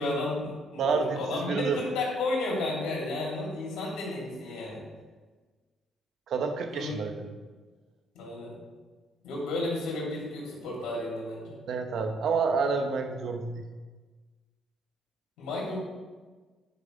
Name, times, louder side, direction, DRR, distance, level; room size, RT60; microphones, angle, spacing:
voice 1, 0.0-4.8 6.7-7.2 8.1-8.5 9.2-11.6 15.4-15.8, left 2 dB, 90° left, -3 dB, 2.7 m, -32 dB
voice 2, 0.8-1.8 6.3-7.1 11.7-13.6, right 5 dB, 70° right, 6 dB, 0.9 m, -28 dB
9.8 x 5.4 x 3.9 m, 1.3 s
cardioid pair, 90°, 0 cm